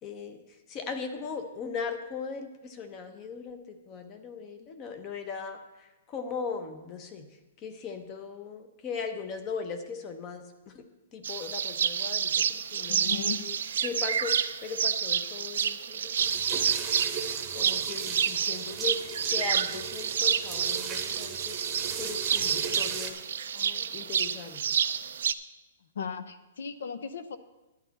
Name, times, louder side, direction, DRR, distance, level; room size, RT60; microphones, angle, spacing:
voice 1, 0.0-10.8 11.1-13.2 13.4-13.6 13.8-16.1 16.5-16.7 17.5-21.6 22.0-23.2 23.5-24.8, left 5 dB, 20° left, 8 dB, 0.8 m, -39 dB
sound 1, 11.2-25.3, right 8 dB, 65° right, 0.5 m, -29 dB
voice 2, 12.9-13.5 25.9-27.4, left 6 dB, 70° left, 12 dB, 0.9 m, -36 dB
sound 2, 16.2-23.1, right 6 dB, 15° right, 1.0 m, -38 dB
11.5 x 10.5 x 4.1 m, 1.1 s
hypercardioid pair, 175°, 0 cm